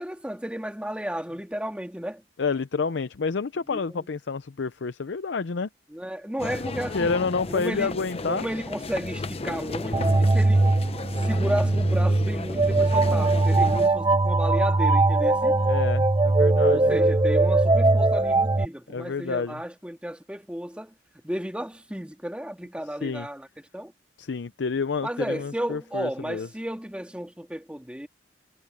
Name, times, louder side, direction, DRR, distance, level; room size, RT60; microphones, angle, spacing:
voice 1, 0.0-2.2 3.7-4.1 5.9-7.2 7.5-8.0 8.2-10.7 11.2-15.6 16.7-20.9 21.2-23.5 23.7-23.9 25.0-28.1, equal, 5° right, 2.2 m, -33 dB
voice 2, 2.4-5.7 6.9-8.4 15.6-17.0 18.9-19.6 23.0-23.3 24.2-26.5, left 4 dB, 85° left, 0.6 m, -29 dB
sound 1, 6.4-13.9, left 2 dB, 35° left, 0.7 m, -34 dB
sound 2, 9.9-18.6, right 2 dB, 25° right, 0.6 m, -21 dB
head